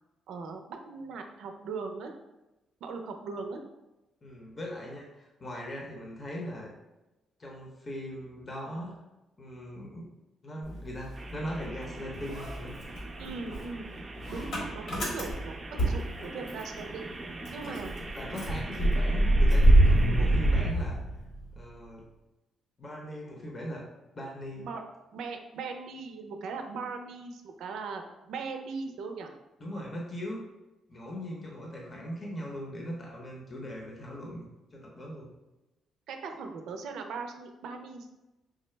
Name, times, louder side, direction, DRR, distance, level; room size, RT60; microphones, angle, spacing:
voice 1, 0.3-2.2 2.8-3.6 13.2-13.9 14.3-17.1 17.5-17.9 24.6-24.8 25.1-29.3 36.1-38.1, right 4 dB, 80° right, 5 dB, 0.5 m, -39 dB
voice 2, 4.2-6.7 7.4-9.0 9.4-10.1 10.4-12.8 14.1-14.5 17.6-17.7 18.1-21.0 21.5-22.1 22.8-23.8 24.2-24.7 29.6-30.4 30.9-34.5 34.7-35.3, equal, 35° left, -1 dB, 0.8 m, -40 dB
Motor vehicle (road) / Engine starting, 10.6-11.8 12.1-16.8 17.1-17.2 17.4-21.6, right 1 dB, 75° left, 1.4 m, -25 dB
sound 1, 11.1-20.7, right 2 dB, 30° right, 0.5 m, -42 dB
4.7 x 2.0 x 3.2 m, 1.0 s
cardioid pair, 90°, 0 cm